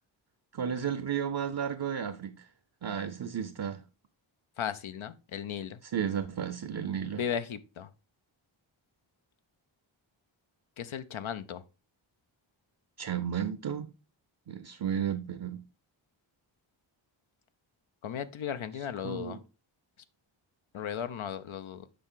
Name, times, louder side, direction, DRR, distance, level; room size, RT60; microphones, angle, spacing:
voice 1, 0.5-2.5 2.8-3.8 5.8-7.2 13.0-13.9 14.5-15.6 18.8-19.4, right 8 dB, 55° right, 0.7 m, -33 dB
voice 2, 4.6-5.8 7.2-7.9 10.8-11.6 18.0-19.4 20.7-21.9, left 8 dB, 80° left, 0.7 m, -36 dB
6.8 x 4.9 x 3.8 m
wide cardioid pair, 65°, 47 cm